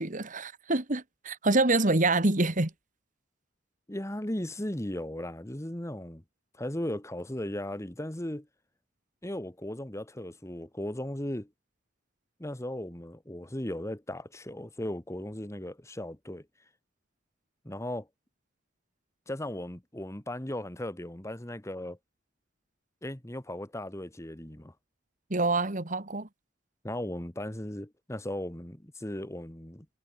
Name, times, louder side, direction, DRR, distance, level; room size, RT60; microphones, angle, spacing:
voice 1, 0.0-2.7 25.3-26.3, right 2 dB, 40° right, 2.1 m, -26 dB
voice 2, 3.9-6.2 6.5-8.5 9.2-11.5 12.4-16.5 17.6-18.1 19.3-22.0 23.0-24.7 26.8-29.9, left 1 dB, 15° left, 1.5 m, -37 dB
head